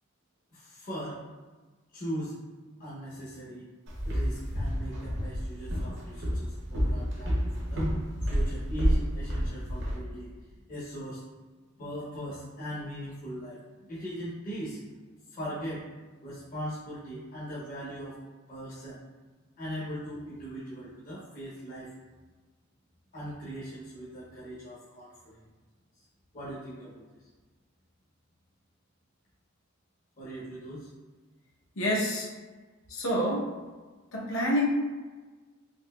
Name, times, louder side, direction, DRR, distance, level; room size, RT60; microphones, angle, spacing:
voice 1, 0.5-1.2 1.9-2.4 2.8-3.7 4.0-7.9 8.2-10.3 10.7-11.2 11.8-14.8 15.3-15.8 16.2-18.2 18.5-19.0 19.6-21.9 23.1-25.5 26.3-27.0 30.2-30.9, equal, 45° left, -8 dB, 0.7 m, -39 dB
Walk footsteps, 3.9-10.0, equal, 60° right, 0.7 m, -29 dB
voice 2, 31.8-32.3 32.9-33.5 34.1-34.7, equal, 80° left, -3 dB, 0.8 m, -27 dB
4.1 x 2.7 x 2.2 m, 1.3 s
head